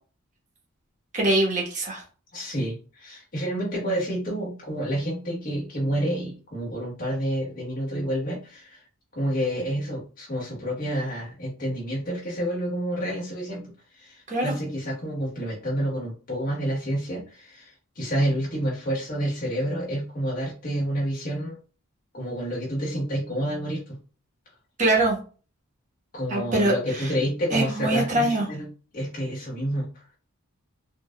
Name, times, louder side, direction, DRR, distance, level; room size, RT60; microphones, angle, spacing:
voice 1, 1.1-2.0 14.3-14.5 24.8-25.2 26.3-27.1 27.5-28.5, right 2 dB, 35° right, 0 dB, 1.0 m, -23 dB
voice 2, 2.3-8.8 9.1-13.6 13.9-21.6 22.1-24.0 26.1-28.7 28.9-29.9, equal, 40° left, -4 dB, 1.3 m, -29 dB
3.7 x 2.4 x 2.2 m, 0.37 s
head